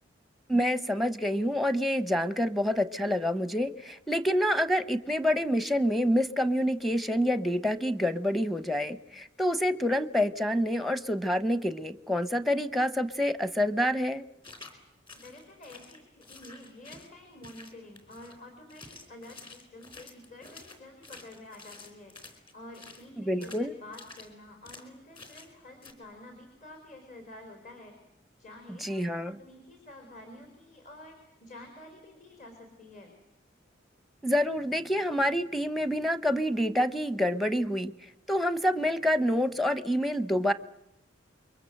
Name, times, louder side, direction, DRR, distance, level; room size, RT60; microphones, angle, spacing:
voice 1, 0.5-14.2 23.2-23.7 28.7-29.4 34.2-37.9 38.3-40.5, equal, ahead, 12 dB, 0.9 m, -27 dB
sound 1, 14.4-14.8 15.1-17.1 17.4-18.4 18.7-23.1 23.4-23.6 23.9-24.3 24.6-24.9 25.1-25.5 25.8-25.9, left 3 dB, 25° left, 4.4 m, -49 dB
voice 2, 15.1-22.2 22.5-28.0 28.4-33.1, left 1 dB, 45° left, 4 dB, 4.8 m, -49 dB
29.0 x 23.5 x 7.8 m, 0.84 s
head